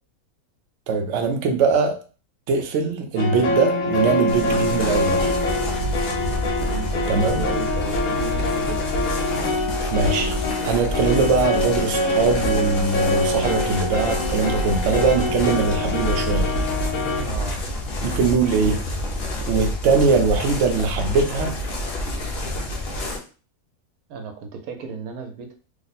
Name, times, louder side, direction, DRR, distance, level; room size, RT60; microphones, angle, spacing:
voice 1, 0.9-2.0 2.5-5.3 7.1-7.4 9.9-10.3 10.6-16.5 18.0-18.8 19.5-21.5, right 4 dB, 65° right, 4 dB, 0.8 m, -21 dB
sound 1, 3.2-17.2, left 2 dB, 75° left, 1.1 m, -25 dB
sound 2, 4.3-23.2, left 1 dB, 50° left, 0.8 m, -28 dB
voice 2, 6.6-8.8 17.2-17.6 24.1-25.6, right 4 dB, 80° right, 5 dB, 1.1 m, -34 dB
3.1 x 2.0 x 4.0 m, 0.36 s
omnidirectional pair, 1.6 m